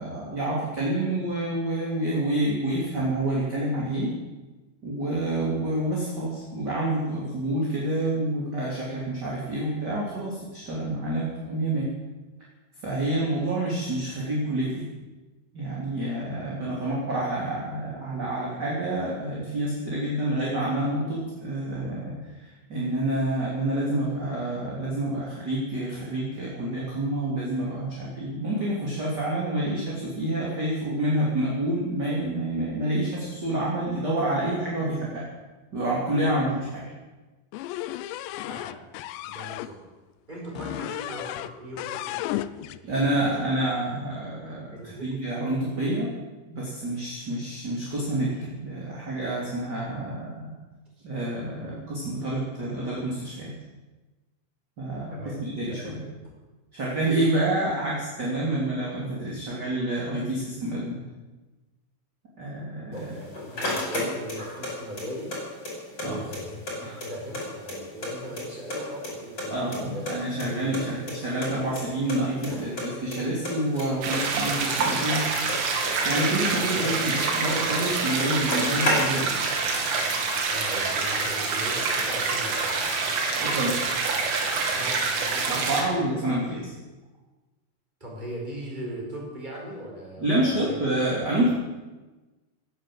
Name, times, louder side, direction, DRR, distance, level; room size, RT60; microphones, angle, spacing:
voice 1, 0.0-4.1 4.8-11.9 12.8-14.8 15.5-35.2 35.7-36.8 42.8-46.1 46.5-50.5 51.0-53.5 54.8-55.1 55.4-56.0 56.7-61.0 62.4-62.9 66.0-66.2 66.8-67.0 69.5-75.2 76.0-79.5 83.4-83.8 85.4-86.6 90.2-91.5, right 1 dB, 25° right, -5 dB, 3.1 m, -28 dB
sound 1, 37.5-39.7 40.5-41.5 41.8-42.8, left 14 dB, 85° left, 2.5 m, -34 dB
voice 2, 38.4-38.8 39.2-39.8 40.3-43.3 44.7-45.1 51.0-51.1 55.1-56.1 62.9-65.3 66.0-66.6 67.0-70.1 70.4-70.9 71.6-71.8 72.5-73.2 80.5-82.9 84.7-85.7 85.9-86.2 88.0-90.8, equal, 10° right, -2 dB, 4.6 m, -39 dB
sound 2, 63.0-64.7 65.0-66.1 66.3-66.4 66.7-68.1 68.4-69.1 69.4-70.8 71.1-71.2 71.4-71.5 71.8-71.9 72.1-72.5 72.8-73.2 73.4-75.9 76.2-77.6 77.9-78.0 78.2-79.4, left 1 dB, 25° left, 5.9 m, -31 dB
sound 3, 74.0-85.8, right 4 dB, 80° right, 4.9 m, -26 dB
18.0 x 10.5 x 7.7 m, 1.2 s
omnidirectional pair, 5.7 m